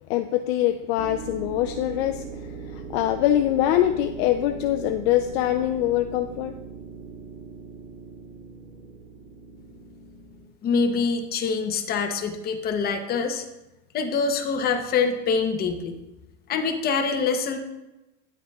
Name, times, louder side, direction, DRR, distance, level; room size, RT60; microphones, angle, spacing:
voice 1, 0.1-2.2 2.7-6.5, left 12 dB, 50° left, 7 dB, 0.4 m, -23 dB
sound 1, 1.0-10.4, right 5 dB, 75° right, 2.2 m, -40 dB
voice 2, 10.6-13.4 13.9-16.0 16.5-17.6, left 5 dB, 25° left, 5 dB, 0.8 m, -25 dB
10.0 x 7.2 x 2.3 m, 1.0 s
supercardioid pair, 145°, 40 cm